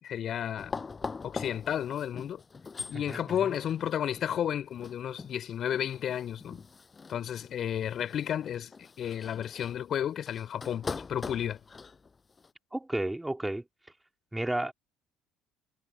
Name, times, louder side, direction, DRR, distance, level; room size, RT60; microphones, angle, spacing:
voice 1, 0.0-0.7 1.2-2.4 2.9-6.7 7.1-11.6, left 9 dB, 50° left, 3.5 m, -32 dB
sound 1, 0.6-12.5, left 4 dB, 30° left, 5.8 m, -43 dB
voice 2, 2.9-3.5 12.7-13.6 14.3-14.7, right 1 dB, 10° right, 2.9 m, -32 dB
hypercardioid pair, 55°, 0 cm